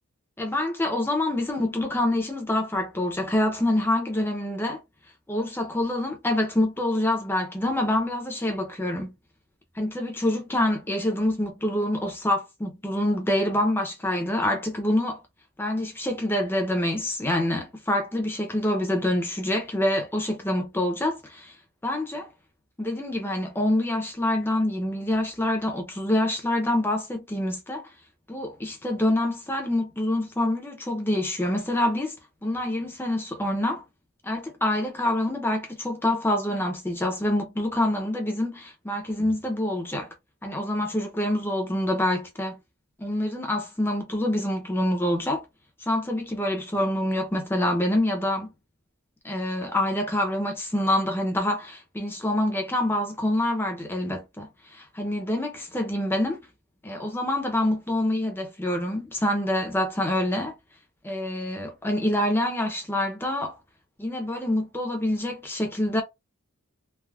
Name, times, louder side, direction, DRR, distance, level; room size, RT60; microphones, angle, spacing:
voice 1, 0.4-4.8 5.3-9.1 9.8-15.2 15.6-21.5 21.8-22.3 22.8-27.8 28.3-32.2 32.4-33.8 34.2-40.1 40.4-42.6 43.0-45.4 45.9-48.5 49.2-56.4 56.8-60.5 61.0-63.6 64.0-66.0, left 1 dB, 10° left, 0.5 m, -26 dB
3.3 x 2.0 x 2.3 m
head